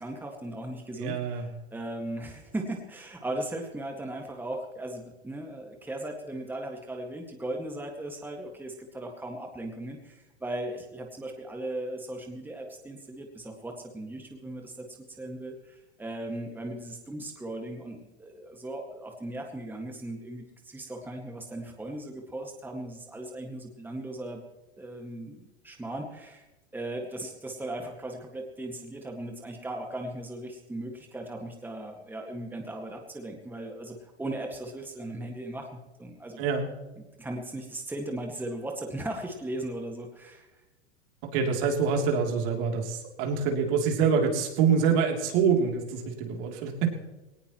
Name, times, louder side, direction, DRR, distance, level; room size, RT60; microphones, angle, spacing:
voice 1, 0.0-14.9 15.2-24.4 24.8-26.5 26.7-36.4 37.0-40.5, right 1 dB, 5° right, 2 dB, 1.9 m, -37 dB
voice 2, 1.0-1.5 36.4-36.7 41.3-46.9, right 6 dB, 55° right, 2 dB, 3.2 m, -26 dB
19.0 x 18.5 x 3.1 m, 1.1 s
hypercardioid pair, 110°, 33 cm